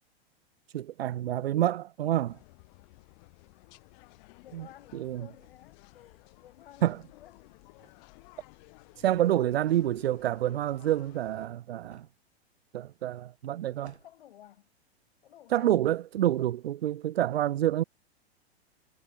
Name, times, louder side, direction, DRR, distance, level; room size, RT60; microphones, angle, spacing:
voice 1, 0.7-2.4 4.5-4.7 4.9-5.3 6.8-7.0 9.0-12.1 12.7-13.9 15.5-17.8, right 12 dB, 65° right, 0.5 m, -28 dB
sound 1, 2.3-11.5, left 28 dB, 45° left, 2.3 m, -56 dB
voice 2, 4.4-7.5 14.0-14.7 15.2-15.7, left 12 dB, 60° left, 1.6 m, -54 dB
sound 2, 4.9-15.8 16.1-16.9, right 2 dB, 85° right, 6.3 m, -64 dB
figure-of-eight pair, 100°, 32 cm